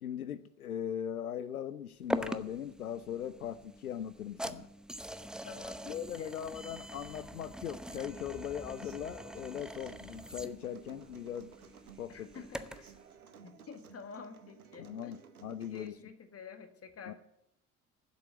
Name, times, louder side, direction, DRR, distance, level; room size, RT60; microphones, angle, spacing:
voice 1, 0.0-4.7 5.8-11.5 12.0-12.3 14.8-15.9 17.1-17.2, left 9 dB, 85° left, 0.5 m, -39 dB
sound 1, 2.1-13.0, right 1 dB, ahead, 0.7 m, -43 dB
voice 2, 5.4-6.3 12.1-12.9 13.4-15.1 15.6-17.1, left 6 dB, 35° left, 1.9 m, -49 dB
Human voice / Acoustic guitar, 7.9-15.9, right 7 dB, 85° right, 0.9 m, -56 dB
15.5 x 7.8 x 7.8 m
figure-of-eight pair, 55°, 42 cm